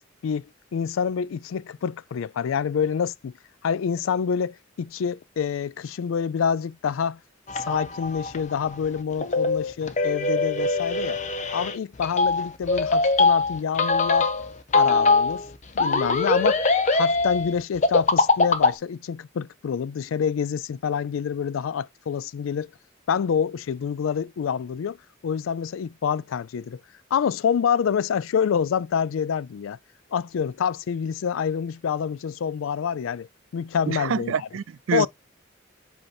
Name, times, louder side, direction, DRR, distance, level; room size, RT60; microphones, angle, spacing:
voice 1, 0.7-3.3 3.6-7.2 7.6-11.2 11.5-14.3 14.7-15.4 15.8-16.7 16.9-22.7 23.1-25.0 25.2-26.8 27.1-29.8 30.1-33.3 33.5-34.3 34.9-35.1, left 7 dB, 85° left, 0.4 m, -27 dB
sound 1, 7.5-18.7, left 3 dB, 40° left, 0.7 m, -22 dB
voice 2, 33.9-35.1, right 6 dB, 90° right, 0.4 m, -27 dB
7.8 x 2.9 x 4.2 m
head